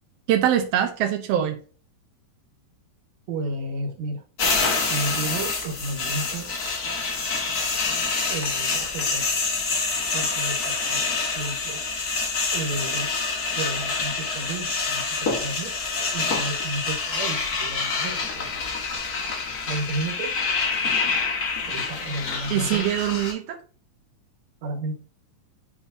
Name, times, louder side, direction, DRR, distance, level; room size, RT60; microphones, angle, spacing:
voice 1, 0.3-1.6 22.5-23.6, right 10 dB, 75° right, 5 dB, 1.5 m, -23 dB
voice 2, 3.3-4.2 4.9-6.5 8.3-9.3 10.1-11.8 12.5-13.1 13.6-15.7 16.1-18.8 19.7-20.3 21.6-22.8 24.6-24.9, right 2 dB, 60° right, 2 dB, 2.6 m, -32 dB
sound 1, 4.4-23.3, left 4 dB, 65° left, 0.9 m, -27 dB
9.6 x 3.9 x 2.6 m, 0.39 s
omnidirectional pair, 3.8 m